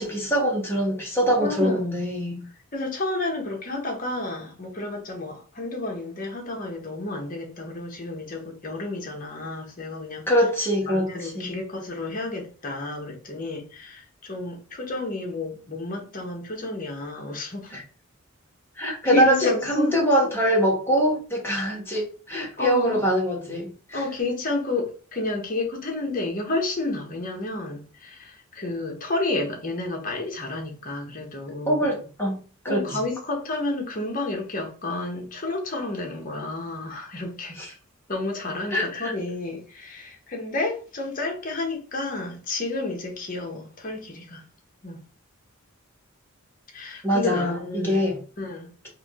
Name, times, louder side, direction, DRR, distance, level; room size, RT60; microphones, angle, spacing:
voice 1, 0.0-2.4 10.3-11.5 17.7-17.8 18.8-24.0 31.6-33.0 37.6-37.7 38.7-39.1 47.0-48.2, equal, 10° left, 1.3 m, -24 dB
voice 2, 1.4-1.9 2.7-10.2 10.9-17.8 19.0-19.9 22.6-23.0 23.9-31.9 32.7-37.6 38.1-44.4 44.8-45.0 46.7-48.0 48.4-48.7, left 2 dB, 40° left, 1.1 m, -31 dB
3.6 x 2.7 x 3.6 m
head